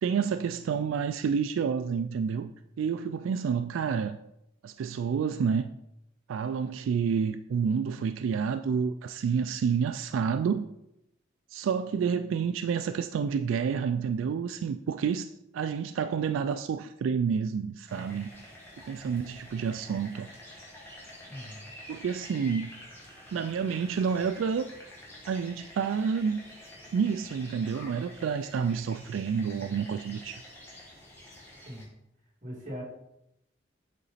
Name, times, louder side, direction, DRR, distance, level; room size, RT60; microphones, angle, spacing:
voice 1, 0.0-4.2 4.6-5.7 6.3-10.7 11.5-18.3 18.9-20.3 21.9-22.7 23.3-24.7 25.3-26.4 26.9-30.4, right 6 dB, 85° right, 0.3 m, -29 dB
sound 1, 17.9-31.9, left 1 dB, 10° left, 1.5 m, -48 dB
voice 2, 21.3-21.7 31.6-31.9 32.4-32.8, equal, 40° right, 2.5 m, -40 dB
8.3 x 4.0 x 4.1 m
head